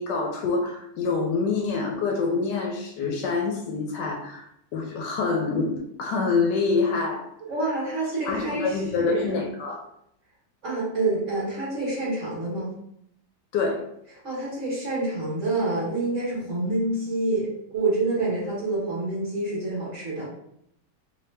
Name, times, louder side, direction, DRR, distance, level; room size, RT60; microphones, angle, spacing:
voice 1, 0.0-4.5 4.7-7.3 8.2-9.8 13.5-13.8, left 4 dB, 75° left, 2 dB, 1.1 m, -26 dB
voice 2, 7.5-9.4 10.6-12.7 14.2-20.2, right 2 dB, 45° right, -6 dB, 1.5 m, -27 dB
3.3 x 2.8 x 3.2 m, 0.74 s
omnidirectional pair, 2.0 m